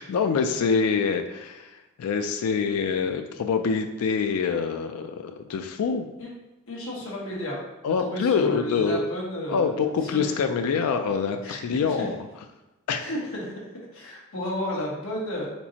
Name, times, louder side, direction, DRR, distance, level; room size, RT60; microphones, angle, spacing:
voice 1, 0.0-6.1 7.8-9.0 9.5-12.2 12.9-13.0, left 5 dB, 85° left, 6 dB, 0.4 m, -25 dB
voice 2, 6.7-7.6 8.0-9.7 10.0-10.3 11.4-12.1 13.0-13.5 13.9-15.5, left 1 dB, 70° left, -4 dB, 1.4 m, -32 dB
4.4 x 4.0 x 2.8 m, 1.0 s
head